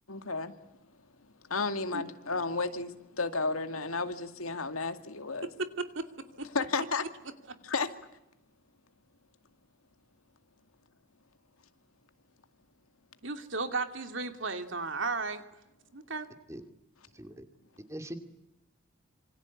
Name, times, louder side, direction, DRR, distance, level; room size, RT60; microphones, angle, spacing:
voice 1, 0.1-0.6 1.4-5.5 6.5-7.1 7.6-7.9, left 4 dB, 90° left, 8 dB, 2.3 m, -32 dB
voice 2, 5.4-6.5 13.2-15.4 15.9-16.3, right 3 dB, 65° right, 7 dB, 2.7 m, -35 dB
voice 3, 17.1-17.5 17.9-18.2, equal, 15° right, 7 dB, 2.5 m, -41 dB
27.0 x 25.5 x 8.5 m, 0.87 s
head